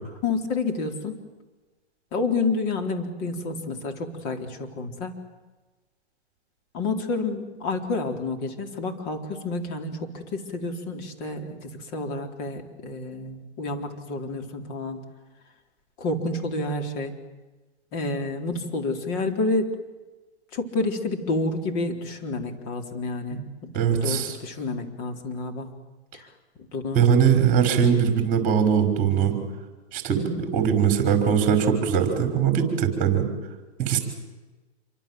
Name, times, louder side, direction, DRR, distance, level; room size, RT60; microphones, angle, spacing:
voice 1, 0.2-1.2 2.1-5.2 6.7-15.0 16.0-17.2 17.9-19.7 20.5-25.7 26.1-26.3 26.7-27.0 30.2-30.5, left 3 dB, 35° left, 4 dB, 3.9 m, -29 dB
voice 2, 23.7-24.3 26.9-29.4 29.9-30.2 30.5-33.3 33.8-34.0, right 7 dB, 25° right, 6 dB, 5.6 m, -21 dB
27.5 x 24.5 x 7.8 m, 1.2 s
hypercardioid pair, 140°, 34 cm